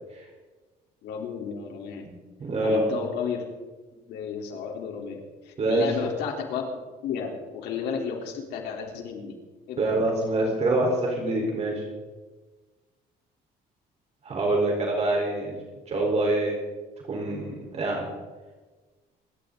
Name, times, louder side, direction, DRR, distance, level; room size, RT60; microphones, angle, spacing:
voice 1, 1.0-2.1 2.6-3.5 4.1-6.6 7.0-9.4 9.7-9.9, left 6 dB, 80° left, 1 dB, 3.7 m, -33 dB
voice 2, 2.1-2.9 5.6-5.8 9.8-11.8 14.2-15.6 15.9-16.5 17.1-18.1, right 2 dB, 40° right, -1 dB, 4.3 m, -25 dB
27.0 x 13.0 x 4.0 m, 1.3 s
cardioid pair, 110°, 17 cm